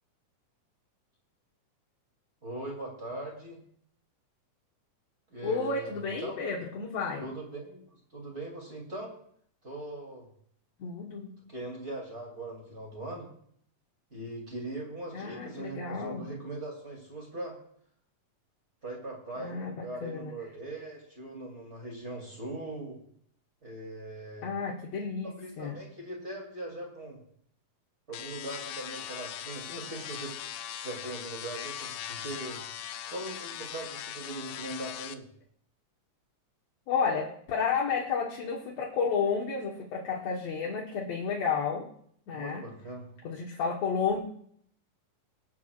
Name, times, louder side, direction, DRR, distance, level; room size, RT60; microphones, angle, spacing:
voice 1, 2.4-3.6 5.3-6.4 7.2-7.8 8.1-9.1 9.6-10.3 11.5-13.3 14.1-17.6 18.8-23.0 23.6-24.5 25.4-27.2 28.1-30.4 30.7-32.6 33.1-35.3 42.3-43.1, right 2 dB, 20° right, -1 dB, 2.7 m, -40 dB
voice 2, 5.4-7.3 10.8-11.4 15.1-16.3 19.4-20.3 24.4-25.8 36.9-41.9 42.3-42.6 43.2-44.2, left 5 dB, 65° left, -2 dB, 2.2 m, -31 dB
sound 1, 28.1-35.2, left 10 dB, 90° left, 2.3 m, -40 dB
23.5 x 8.2 x 2.4 m, 0.64 s
omnidirectional pair, 3.7 m